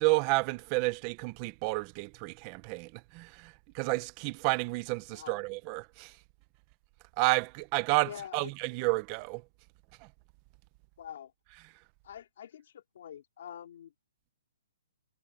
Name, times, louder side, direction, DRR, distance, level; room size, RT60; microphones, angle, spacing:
voice 1, 0.0-6.1 7.2-9.4, right 24 dB, 20° right, 0.6 m, -31 dB
voice 2, 5.1-5.4 8.0-8.5 11.0-11.3 12.0-13.9, left 9 dB, 45° left, 2.5 m, -45 dB
hypercardioid pair, 180°, 0 cm